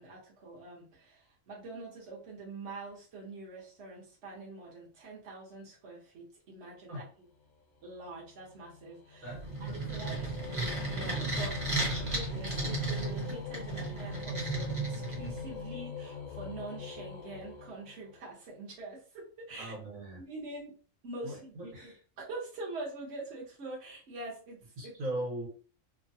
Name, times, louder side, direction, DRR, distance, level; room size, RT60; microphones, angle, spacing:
voice 1, 0.0-7.3 7.8-9.3 9.6-11.5 12.0-19.7 20.1-20.7 21.0-24.9, right 2 dB, 60° right, -4 dB, 1.3 m, -45 dB
sound 1, 7.4-18.3, left 6 dB, 90° left, 1.1 m, -44 dB
voice 2, 9.2-10.3 19.6-20.2 21.2-22.0 24.8-25.5, right 1 dB, 90° right, -2 dB, 1.5 m, -40 dB
sound 2, 9.3-15.6, right 2 dB, 30° right, 0.9 m, -35 dB
3.1 x 2.2 x 2.7 m, 0.39 s
omnidirectional pair, 1.4 m